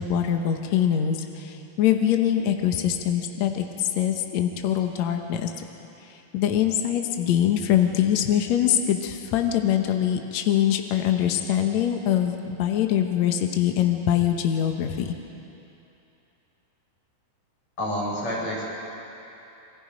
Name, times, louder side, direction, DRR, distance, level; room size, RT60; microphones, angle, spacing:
voice 1, 0.0-5.5 6.1-15.1, left 10 dB, 80° left, 4 dB, 1.5 m, -23 dB
voice 2, 17.8-18.6, left 1 dB, 40° left, -5 dB, 7.2 m, -28 dB
28.0 x 23.5 x 5.2 m, 2.9 s
omnidirectional pair, 4.9 m